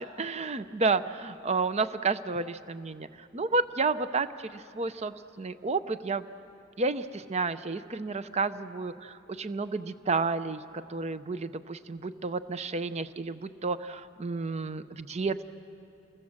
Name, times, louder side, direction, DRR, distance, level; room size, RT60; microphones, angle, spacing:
voice 1, 0.2-3.1 3.3-4.3 4.7-6.2 6.8-15.4, right 4 dB, 35° right, 12 dB, 0.6 m, -31 dB
29.0 x 21.5 x 7.4 m, 2.6 s
head